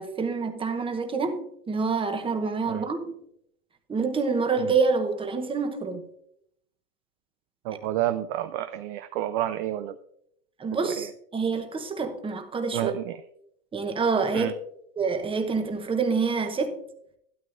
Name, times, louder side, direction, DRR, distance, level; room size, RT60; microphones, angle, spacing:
voice 1, 0.0-3.2 3.9-6.0 10.6-13.0 13.7-14.5 15.0-16.8, right 4 dB, 10° right, 1.0 m, -27 dB
voice 2, 7.6-10.0 11.0-11.1 12.7-13.2 14.3-14.5, right 13 dB, 35° right, 0.4 m, -29 dB
12.5 x 12.5 x 2.6 m
supercardioid pair, 135°, 47 cm